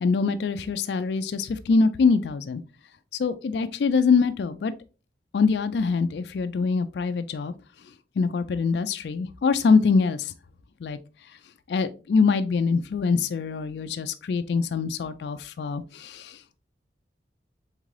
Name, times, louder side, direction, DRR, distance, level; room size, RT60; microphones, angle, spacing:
voice 1, 0.0-2.6 3.2-4.7 5.3-7.5 8.2-10.3 10.8-11.0 11.7-16.4, left 4 dB, 65° left, 0.3 m, -24 dB
3.7 x 3.6 x 3.1 m
head